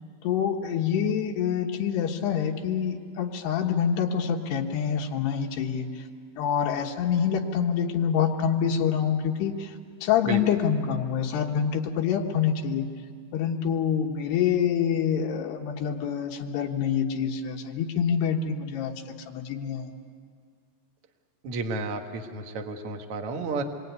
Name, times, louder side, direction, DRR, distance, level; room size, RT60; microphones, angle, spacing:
voice 1, 0.2-6.0 6.4-9.8 10.0-12.9 13.3-18.9 19.3-19.9, left 8 dB, 70° left, 2 dB, 3.3 m, -26 dB
voice 2, 10.2-10.6 21.4-23.6, right 3 dB, 55° right, 3 dB, 1.6 m, -32 dB
27.0 x 22.5 x 9.5 m, 2.1 s
omnidirectional pair, 5.2 m